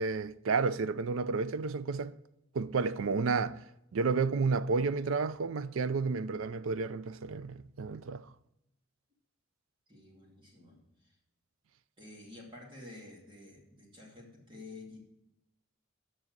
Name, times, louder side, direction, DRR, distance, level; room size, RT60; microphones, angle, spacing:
voice 1, 0.0-2.1 2.5-3.6 3.9-8.2, right 4 dB, 80° right, 0.5 m, -31 dB
voice 2, 9.9-11.1 12.0-15.1, left 2 dB, 25° right, 2.5 m, -50 dB
7.4 x 6.2 x 7.9 m
head